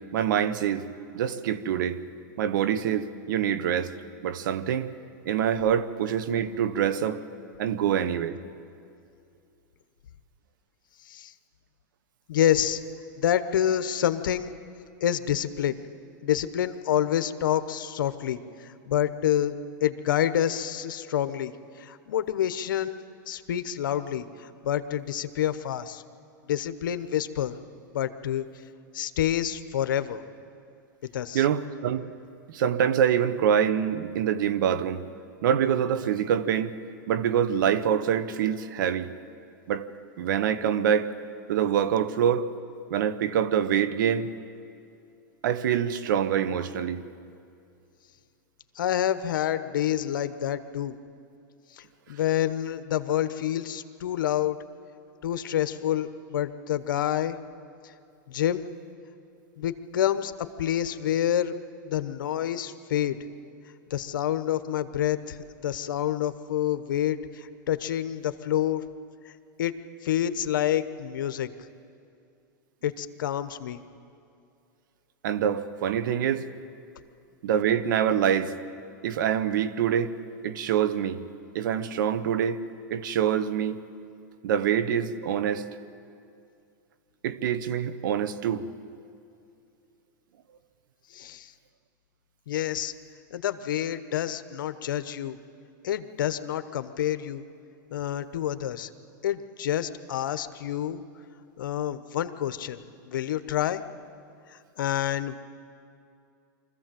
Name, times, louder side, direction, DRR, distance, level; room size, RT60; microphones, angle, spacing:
voice 1, 0.1-0.9 1.1-2.0 2.4-3.9 4.2-4.9 5.2-7.2 7.6-8.4 31.3-32.1 32.5-35.0 35.4-36.7 37.1-39.1 39.7-39.8 40.2-41.1 41.5-42.5 42.9-44.3 45.4-47.0 75.2-76.4 77.4-78.5 79.0-80.1 80.4-81.2 81.5-82.6 82.9-83.8 84.4-85.7 87.2-88.6, right 9 dB, 75° right, 1.0 m, -25 dB
voice 2, 12.3-12.8 13.2-14.5 15.0-15.8 16.2-21.5 21.8-23.0 23.3-26.0 26.5-27.6 27.9-28.4 28.9-30.2 31.1-31.4 48.7-51.0 51.7-54.6 55.2-57.4 57.8-57.9 58.3-58.7 59.6-61.5 61.8-63.2 63.9-65.4 65.6-68.8 69.6-69.7 70.0-71.5 72.8-73.8 91.1-91.5 92.5-92.9 93.3-95.4 95.8-97.4 97.9-98.9 99.2-101.0 101.6-103.8 104.5-105.4, left 11 dB, 85° left, 1.0 m, -28 dB
24.0 x 15.0 x 7.6 m
supercardioid pair, 130°, 11 cm